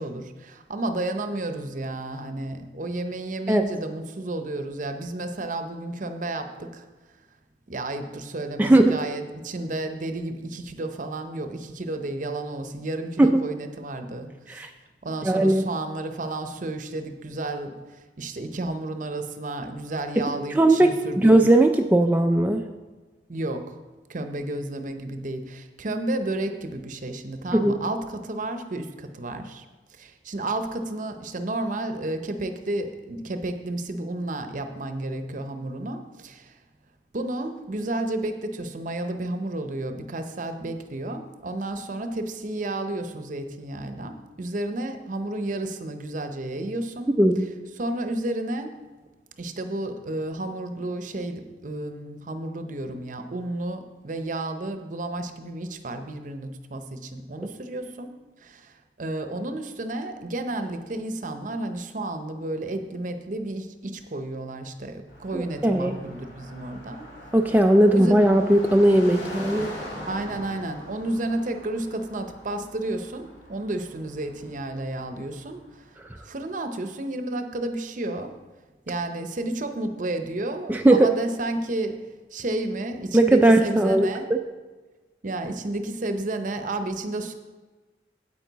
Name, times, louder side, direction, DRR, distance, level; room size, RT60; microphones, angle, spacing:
voice 1, 0.0-6.8 7.7-14.6 15.0-21.3 23.3-23.8 24.1-29.6 30.0-36.5 37.1-47.1 47.8-48.8 49.4-58.1 58.4-67.1 67.9-68.3 70.0-75.8 76.2-78.4 78.9-84.3 85.2-87.3, right 2 dB, 45° right, 8 dB, 0.7 m, -32 dB
voice 2, 8.6-9.0 13.2-13.4 14.5-14.7 15.2-15.6 20.6-22.6 27.5-27.8 47.2-47.5 65.3-65.9 67.3-69.8 80.7-81.1 83.1-84.1, right 1 dB, 10° right, 4 dB, 0.3 m, -18 dB
Car passing by, 65.1-76.2, left 1 dB, 65° left, 2.7 m, -42 dB
9.2 x 8.6 x 4.0 m, 1.3 s
head